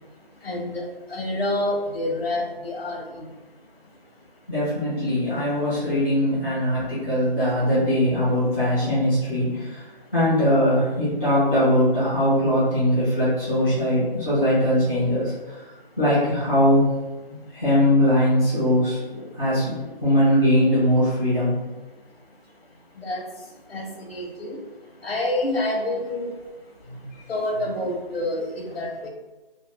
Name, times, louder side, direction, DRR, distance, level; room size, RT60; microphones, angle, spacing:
voice 1, 0.4-3.3 23.0-23.2 23.7-24.6 25.0-26.3 27.3-29.1, left 1 dB, 80° left, 1 dB, 0.9 m, -28 dB
voice 2, 4.5-9.8 10.1-16.9 17.2-21.5 26.8-27.0, equal, 5° right, -15 dB, 0.6 m, -21 dB
2.6 x 2.0 x 3.4 m, 1.2 s
figure-of-eight pair, 160°, 30 cm